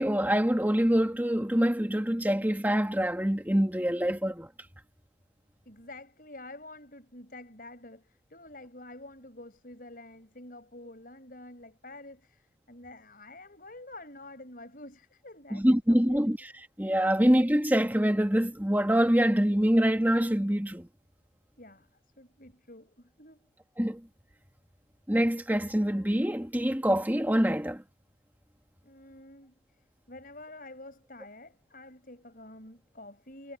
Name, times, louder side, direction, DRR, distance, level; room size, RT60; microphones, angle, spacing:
voice 1, 0.0-4.5 15.5-16.4 16.8-20.9 23.8-24.0 25.1-27.8, equal, 10° right, 1.6 m, -25 dB
voice 2, 5.6-16.3 17.0-17.1 21.6-23.5 28.8-29.5 30.1-33.6, left 2 dB, 50° left, 6.5 m, -48 dB
head